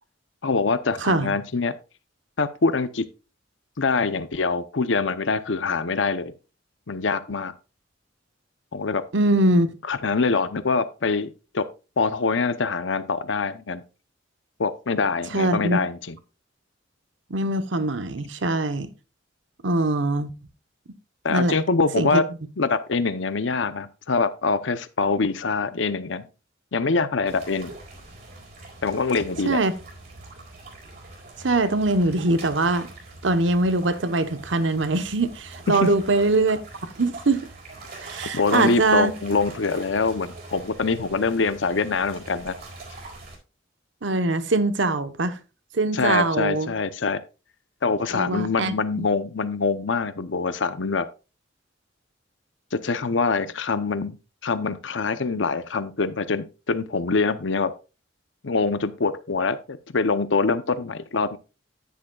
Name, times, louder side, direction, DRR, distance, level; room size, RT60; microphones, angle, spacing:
voice 1, 0.4-1.8 2.4-3.0 3.8-6.3 6.9-7.5 8.7-9.0 9.9-11.3 11.5-11.6 12.0-13.8 14.6-16.2 21.2-22.2 22.6-26.2 26.7-27.7 28.8-29.6 35.7-35.9 38.3-42.5 45.9-47.2 47.8-51.0 52.7-54.2 54.4-57.7 58.4-61.4, left 4 dB, 75° left, 0.7 m, -24 dB
voice 2, 1.0-1.3 9.1-9.7 15.3-15.8 17.3-18.9 19.6-20.3 21.3-21.5 22.0-22.2 29.5-29.7 31.4-32.9 33.2-36.6 37.0-37.4 38.0-39.1 44.0-45.3 45.7-46.7 48.1-49.1, right 2 dB, 75° right, 1.0 m, -22 dB
sound 1, 27.3-43.3, right 2 dB, 55° right, 4.4 m, -43 dB
10.0 x 10.0 x 2.3 m
head